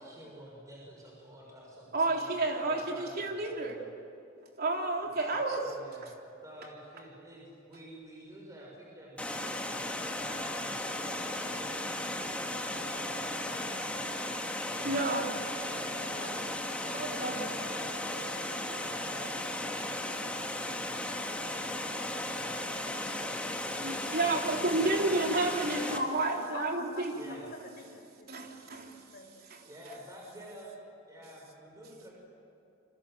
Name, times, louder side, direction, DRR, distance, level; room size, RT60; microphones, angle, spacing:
voice 1, 0.0-3.8 5.0-14.1 14.5-16.2 16.8-23.3 24.2-25.3 27.1-27.5 29.6-30.8 31.1-32.1, equal, 15° right, -3 dB, 6.1 m, -50 dB
voice 2, 1.9-3.8 4.6-5.6 14.8-15.2 16.9-17.4 23.8-27.3 28.3-29.0 29.5-29.6, right 2 dB, 50° right, 1 dB, 3.6 m, -31 dB
Water, 9.2-26.0, left 1 dB, 5° left, 2.1 m, -36 dB
voice 3, 16.0-16.8 25.7-28.3 28.9-29.3, left 2 dB, 50° left, 2 dB, 5.4 m, -47 dB
28.5 x 25.5 x 7.8 m, 2.8 s
head